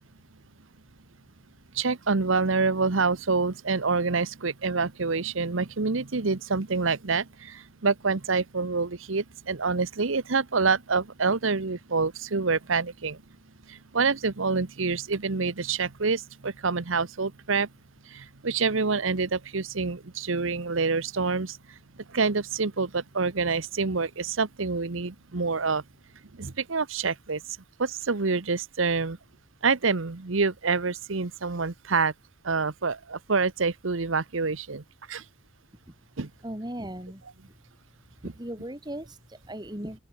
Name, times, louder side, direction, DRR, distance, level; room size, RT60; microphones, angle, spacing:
voice 1, 1.7-13.2 13.7-17.7 18.1-21.8 22.1-25.8 26.3-27.4 27.8-29.2 29.6-32.1 32.4-35.2 36.2-36.3, right 4 dB, 70° right, 1.1 m, -27 dB
voice 2, 36.4-37.5 38.2-40.0, right 1 dB, 20° right, 3.3 m, -38 dB
open air
head